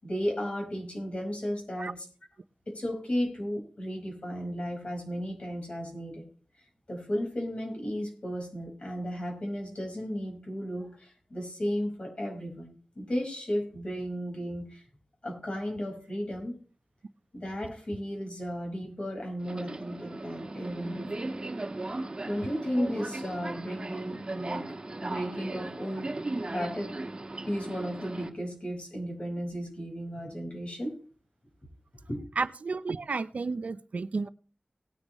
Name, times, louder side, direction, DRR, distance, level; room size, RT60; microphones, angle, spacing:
voice 1, 0.0-2.1 2.7-6.2 6.9-14.8 15.2-16.6 17.3-21.3 22.2-24.6 25.0-26.1 26.5-27.0 27.5-30.9 32.1-32.2, equal, 50° left, 5.1 m, -34 dB
Subway metro underground, 19.4-28.3, right 2 dB, 40° right, 1.6 m, -37 dB
voice 2, 32.4-34.3, right 4 dB, 75° right, 0.6 m, -32 dB
18.5 x 9.8 x 3.1 m
wide cardioid pair, 85°, 2 cm